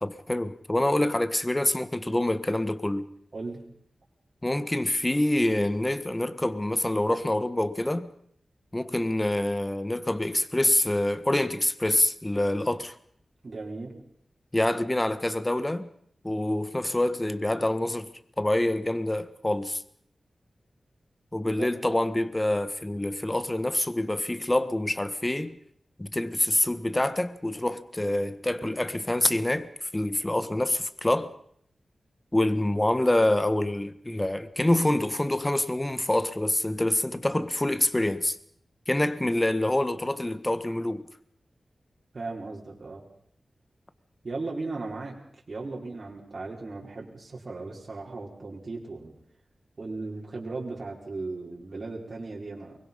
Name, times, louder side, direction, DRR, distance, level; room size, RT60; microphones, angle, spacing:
voice 1, 0.0-3.1 4.4-8.1 8.7-12.9 14.5-15.9 16.2-18.1 18.4-19.8 21.3-25.6 26.0-31.3 32.3-38.4 38.9-41.1, left 1 dB, 20° left, 1.5 m, -26 dB
voice 2, 13.4-13.9 21.4-21.7 42.1-43.0 44.2-45.2 45.5-49.1 49.8-52.8, right 3 dB, 55° right, 4.9 m, -36 dB
23.5 x 22.0 x 5.6 m
wide cardioid pair, 65°, 0 cm